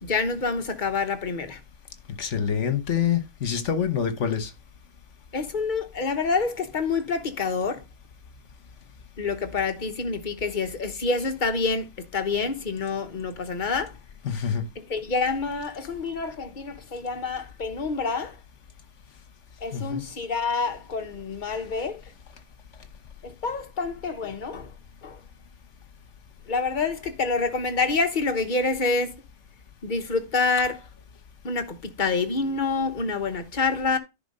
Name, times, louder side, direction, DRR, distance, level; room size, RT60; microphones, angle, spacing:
voice 1, 0.0-1.6 5.3-7.8 9.2-14.0 14.9-18.4 19.6-22.0 23.2-24.7 25.0-25.2 26.5-29.1 29.8-30.8 31.4-34.0, left 4 dB, 40° left, 1.2 m, -27 dB
voice 2, 2.2-4.5 14.2-14.7 19.7-20.0, left 8 dB, 65° left, 1.4 m, -26 dB
10.5 x 3.9 x 5.3 m
omnidirectional pair, 1.3 m